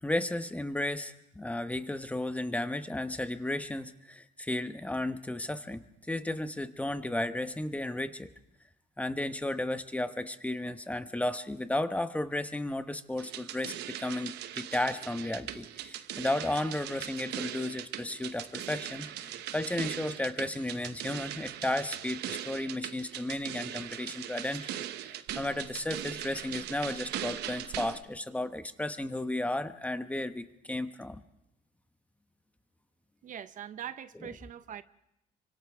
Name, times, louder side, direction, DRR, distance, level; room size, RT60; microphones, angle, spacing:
voice 1, 0.0-8.3 9.0-31.2, left 1 dB, 10° left, 9 dB, 1.0 m, -34 dB
sound 1, 13.2-28.0, right 12 dB, 80° right, 1.0 m, -40 dB
voice 2, 33.2-34.8, right 9 dB, 50° right, 13 dB, 0.7 m, -42 dB
29.0 x 25.0 x 3.5 m, 0.83 s
cardioid pair, 110°, 17 cm